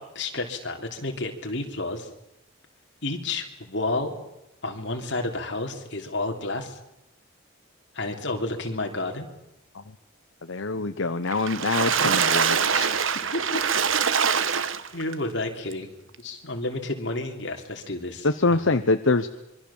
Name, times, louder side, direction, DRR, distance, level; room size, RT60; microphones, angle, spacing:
voice 1, 0.0-2.1 3.0-4.2 4.6-6.8 7.9-9.3 12.7-12.9 13.3-13.6 14.9-18.7, left 2 dB, 55° left, 3 dB, 3.2 m, -31 dB
voice 2, 10.4-12.6 18.2-19.3, left 3 dB, 75° left, 8 dB, 1.0 m, -24 dB
Water / Splash splatter, 11.3-15.1 15.7-15.8 16.1-16.2, right 6 dB, 75° right, 1.2 m, -24 dB
25.5 x 23.5 x 7.3 m, 0.88 s
head